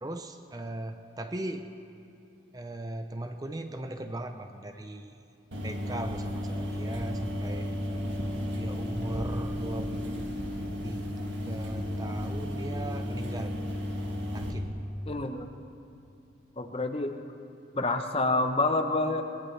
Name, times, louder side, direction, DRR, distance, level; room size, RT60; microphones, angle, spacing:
voice 1, 0.0-1.7 2.5-5.1 5.6-7.7 8.6-10.3 10.8-11.1 11.5-13.6 14.3-14.7, right 1 dB, 20° right, 7 dB, 0.5 m, -38 dB
sound 1, 5.5-14.5, left 1 dB, 75° right, 1.9 m, -33 dB
voice 2, 15.1-15.5 16.6-17.2 17.7-19.2, left 2 dB, 30° left, 6 dB, 0.8 m, -27 dB
21.0 x 19.5 x 3.3 m, 2.6 s
head